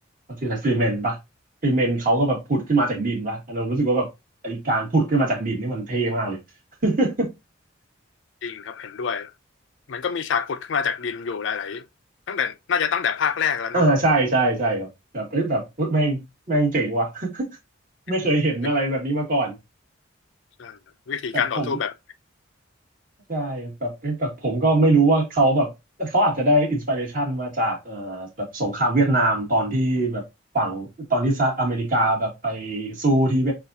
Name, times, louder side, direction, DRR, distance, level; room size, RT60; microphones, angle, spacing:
voice 1, 0.3-1.2 1.6-4.1 4.4-6.4 6.8-7.3 13.7-14.9 15.1-16.2 16.5-17.5 18.1-19.6 21.3-21.8 23.3-25.7 26.0-30.2 30.5-33.5, right 2 dB, 45° right, 1.8 m, -22 dB
voice 2, 8.4-9.3 9.9-11.8 12.3-13.9 20.6-20.8 21.1-21.9, left 7 dB, 70° left, 0.4 m, -26 dB
6.3 x 2.5 x 2.7 m
head